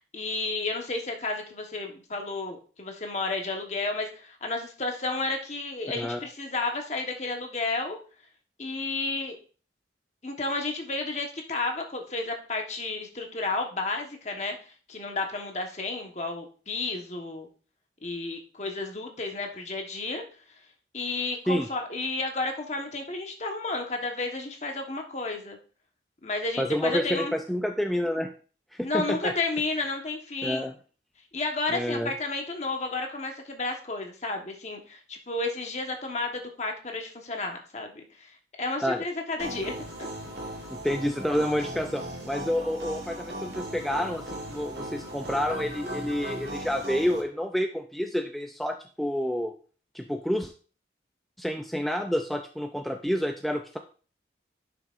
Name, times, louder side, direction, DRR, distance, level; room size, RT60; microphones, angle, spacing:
voice 1, 0.1-8.0 8.6-9.3 10.2-14.6 14.9-17.5 18.0-20.2 20.9-25.6 26.2-27.3 28.8-30.7 31.3-38.3 38.6-39.7 40.0-40.1, left 3 dB, 40° left, 3 dB, 1.3 m, -32 dB
voice 2, 26.6-28.3 28.7-29.3 30.4-30.7 31.7-32.1 38.8-39.0 40.7-49.5 49.9-50.5 51.4-53.8, equal, ahead, 4 dB, 0.4 m, -29 dB
sound 1, 39.4-47.2, right 1 dB, 70° right, 2.0 m, -38 dB
11.0 x 5.9 x 2.5 m, 0.40 s
head